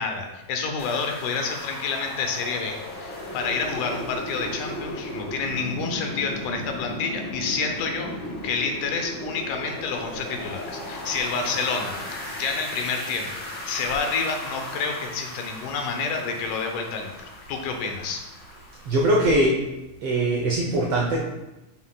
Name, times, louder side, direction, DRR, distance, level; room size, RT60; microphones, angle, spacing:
voice 1, 0.0-8.1 8.4-18.2, left 4 dB, 80° left, 4 dB, 2.2 m, -29 dB
sound 1, 0.8-19.4, left 1 dB, 45° left, 2.7 m, -36 dB
voice 2, 18.8-19.6 20.0-21.2, right 1 dB, 75° right, -3 dB, 1.4 m, -21 dB
7.2 x 6.1 x 2.3 m, 1.0 s
omnidirectional pair, 3.6 m